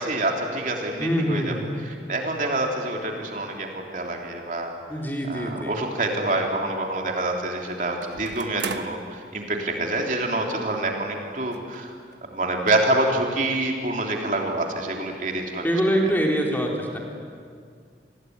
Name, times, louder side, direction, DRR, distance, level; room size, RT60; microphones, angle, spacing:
voice 1, 0.0-4.7 5.3-11.9 12.3-15.6 16.0-16.1, right 2 dB, 45° right, 1 dB, 3.4 m, -27 dB
voice 2, 1.0-1.6 4.9-5.7 15.6-17.0, equal, 10° left, 0 dB, 3.4 m, -24 dB
sound 1, 5.7-5.8 8.0-9.0 10.0-10.1 10.3-10.4 11.5-11.8 12.1-12.2 12.7-12.8, right 5 dB, 80° right, 1.2 m, -36 dB
28.5 x 21.0 x 9.6 m, 2.1 s
head